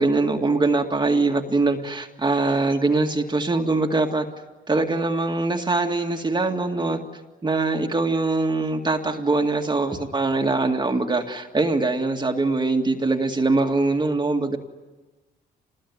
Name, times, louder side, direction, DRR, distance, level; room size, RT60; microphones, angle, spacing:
voice 1, 0.0-4.3 4.7-7.0 7.4-14.6, right 3 dB, 20° right, 3 dB, 2.1 m, -22 dB
26.5 x 20.5 x 9.7 m, 1.2 s
cardioid pair, 90°, 20 cm